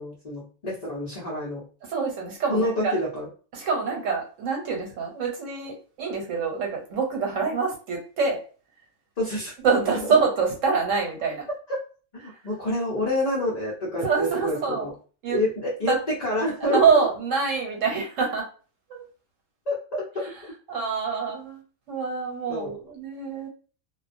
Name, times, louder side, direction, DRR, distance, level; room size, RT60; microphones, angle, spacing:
voice 1, 0.0-1.6 2.5-3.3 9.2-9.5 9.9-10.0 11.7-11.8 12.2-14.9 15.3-15.9 16.2-17.1 19.7-20.2 22.5-22.7, left 1 dB, 45° left, -5 dB, 0.6 m, -27 dB
voice 2, 1.9-3.0 3.5-8.4 9.6-11.5 14.0-14.9 15.2-15.4 15.9-16.0 16.4-18.5 18.9-19.0 20.7-21.6 21.9-23.5, right 5 dB, 85° right, 1 dB, 1.1 m, -25 dB
2.2 x 2.2 x 2.5 m, 0.37 s
omnidirectional pair, 1.3 m